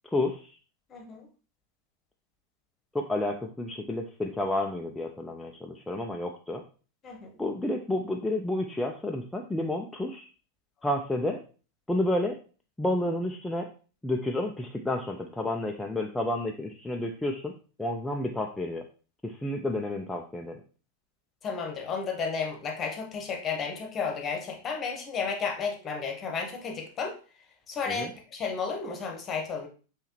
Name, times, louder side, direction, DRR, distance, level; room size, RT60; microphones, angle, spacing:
voice 1, 0.1-0.5 2.9-6.6 7.4-10.3 10.8-11.4 11.9-12.4 12.8-13.7 14.0-17.5 17.8-18.8 19.2-20.6 27.9-28.1, left 1 dB, 5° left, 1 dB, 0.4 m, -30 dB
voice 2, 0.9-1.3 7.0-7.3 21.4-27.2 27.7-29.7, left 5 dB, 25° left, 3 dB, 1.0 m, -33 dB
5.5 x 3.2 x 3.0 m, 0.37 s
figure-of-eight pair, 90°, 0 cm